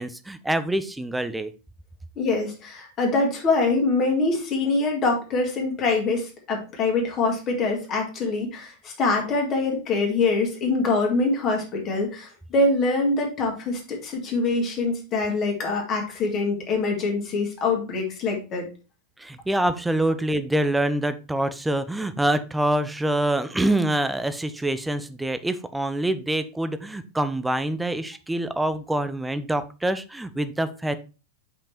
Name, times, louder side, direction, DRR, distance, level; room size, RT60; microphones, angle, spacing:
voice 1, 0.0-1.5 19.2-30.9, right 1 dB, 5° right, 12 dB, 0.6 m, -25 dB
voice 2, 2.2-18.7, left 3 dB, 30° left, 1 dB, 2.1 m, -24 dB
5.5 x 5.2 x 4.3 m, 0.33 s
figure-of-eight pair, 90°, 0 cm